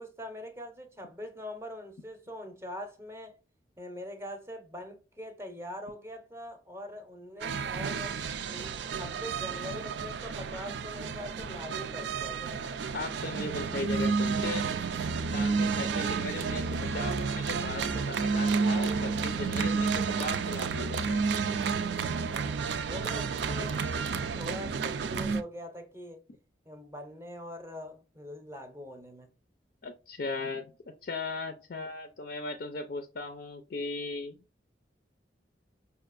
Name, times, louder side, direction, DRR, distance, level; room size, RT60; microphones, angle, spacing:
voice 1, 0.0-3.4 3.8-8.2 8.5-12.8 15.7-16.1 22.0-24.1 24.3-26.2 26.7-29.3, left 1 dB, 15° right, 0.6 m, -43 dB
sound 1, 7.4-25.4, right 5 dB, 70° right, 0.4 m, -31 dB
voice 2, 12.9-14.7 15.3-21.2 29.8-34.4, left 3 dB, 55° left, 0.4 m, -37 dB
5.2 x 2.4 x 2.4 m
head